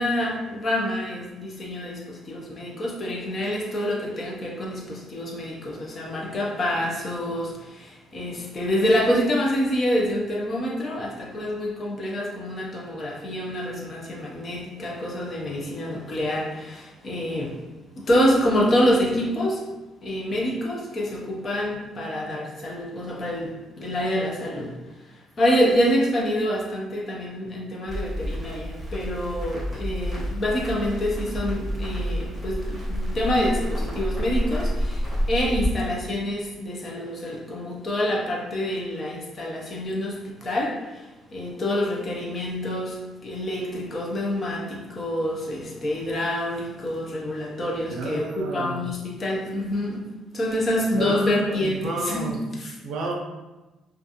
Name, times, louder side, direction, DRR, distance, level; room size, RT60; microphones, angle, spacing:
voice 1, 0.0-17.6 18.0-19.6 20.0-24.8 25.0-50.1 50.3-52.8, equal, 30° left, -2 dB, 0.4 m, -27 dB
Crackle, 27.9-35.7, equal, 5° right, 0.9 m, -29 dB
voice 2, 47.9-48.8 50.9-52.4 52.8-53.1, right 2 dB, 70° right, 0 dB, 0.5 m, -31 dB
2.4 x 2.3 x 2.7 m, 1.1 s
cardioid pair, 180°, 0 cm